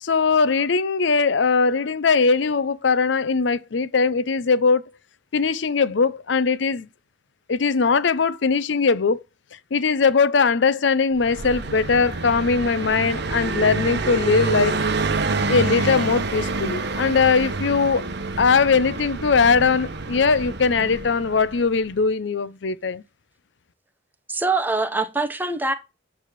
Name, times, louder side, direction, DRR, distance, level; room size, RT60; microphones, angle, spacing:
voice 1, 0.0-4.8 5.3-6.9 7.5-9.2 9.7-14.8 15.5-18.1 18.4-23.0, left 5 dB, 70° left, 0.6 m, -20 dB
Car passing by, 11.2-21.8, right 3 dB, 60° right, 1.0 m, -27 dB
voice 2, 24.3-25.7, right 3 dB, 10° right, 0.9 m, -23 dB
9.3 x 3.5 x 6.0 m
head